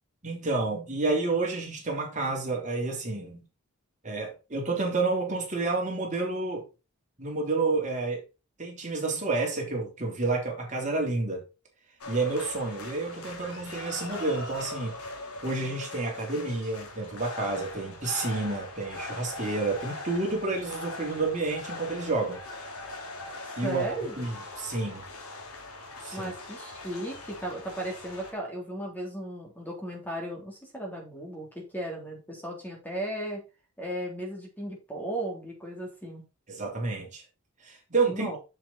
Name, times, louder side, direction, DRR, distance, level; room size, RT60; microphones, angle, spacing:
voice 1, 0.2-3.4 4.0-6.6 7.2-8.2 8.6-11.4 12.1-14.9 15.4-22.4 23.6-23.9 24.2-25.0 26.0-26.3 36.5-37.2 37.6-38.3, right 3 dB, 35° right, 0 dB, 3.3 m, -30 dB
sound 1, 12.0-28.3, left 2 dB, 80° left, 2.6 m, -41 dB
voice 2, 23.4-24.1 26.1-33.4 33.8-36.2 38.0-38.4, right 1 dB, 10° left, 0 dB, 3.3 m, -36 dB
7.5 x 7.4 x 4.1 m, 0.29 s
head